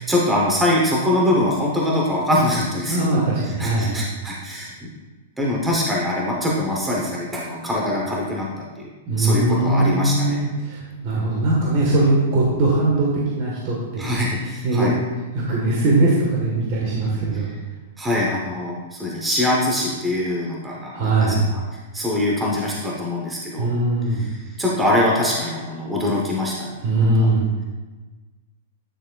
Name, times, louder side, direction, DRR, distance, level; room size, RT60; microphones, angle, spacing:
voice 1, 0.0-3.2 3.6-4.9 5.4-8.9 9.2-10.4 14.0-14.9 18.0-21.6 21.9-23.7 24.2-24.3 24.6-26.7, left 1 dB, 5° right, -4 dB, 0.8 m, -23 dB
voice 2, 2.9-4.0 9.1-14.1 14.6-14.9 15.3-17.5 20.9-21.5 23.6-24.3 26.8-27.6, right 2 dB, 35° right, -4 dB, 1.3 m, -20 dB
9.7 x 6.5 x 2.3 m, 1.2 s
supercardioid pair, 170°, 0 cm